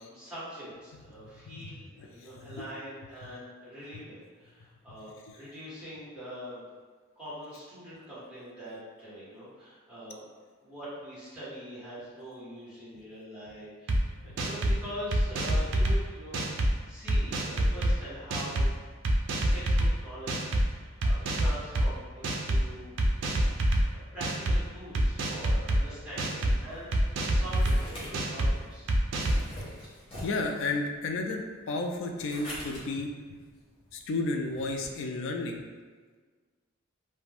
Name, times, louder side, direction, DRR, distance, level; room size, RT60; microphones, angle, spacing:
voice 1, 0.0-6.6 7.2-10.2 10.6-16.4 16.9-18.7 19.5-22.9 23.8-28.9, equal, 5° right, -11 dB, 1.2 m, -43 dB
voice 2, 1.2-1.7 2.5-2.7 3.2-3.3 29.6-29.7 30.2-31.4 31.7-33.1 33.9-35.6, left 3 dB, 65° left, 3 dB, 0.3 m, -32 dB
sound 1, 13.9-14.0 14.4-14.8 15.1-16.0 16.3-16.7 17.1-17.9 18.3-18.7 19.0-19.9 20.3-20.6 21.0-21.9 22.2-22.6 23.0-23.8 24.2-24.6 24.9-25.8 26.2-26.5 26.9-27.8 28.1-28.5 28.9-29.4, right 1 dB, 60° right, 0.4 m, -26 dB
sound 2, 26.7-34.9, equal, 25° left, 0.8 m, -45 dB
2.4 x 2.2 x 3.3 m, 1.5 s
head